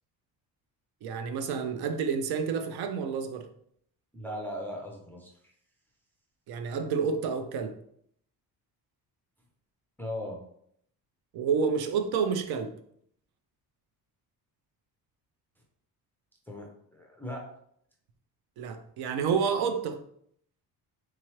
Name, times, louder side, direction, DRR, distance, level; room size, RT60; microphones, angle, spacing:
voice 1, 1.0-3.5 6.5-7.7 11.3-12.7 18.6-20.0, right 6 dB, 75° right, 8 dB, 0.6 m, -29 dB
voice 2, 4.1-5.5 10.0-10.4 16.5-17.5, left 1 dB, 5° left, 0 dB, 0.3 m, -38 dB
3.6 x 3.0 x 3.0 m, 0.68 s
cardioid pair, 180°, 38 cm